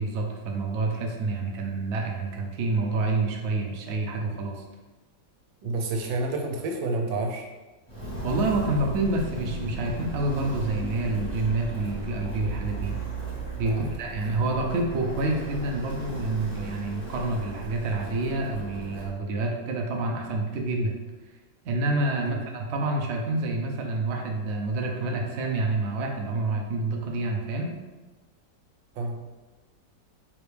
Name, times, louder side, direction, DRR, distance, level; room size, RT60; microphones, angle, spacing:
voice 1, 0.0-4.6 8.2-13.0 13.6-20.9 21.6-27.7, right 2 dB, 70° right, 1 dB, 0.6 m, -28 dB
voice 2, 5.6-7.4 13.7-13.9 22.2-22.4 29.0-29.2, right 2 dB, 85° right, 2 dB, 1.4 m, -29 dB
Walk footsteps, 7.9-19.1, right 2 dB, 5° left, 1.2 m, -36 dB
4.7 x 3.0 x 3.3 m, 1.2 s
omnidirectional pair, 2.0 m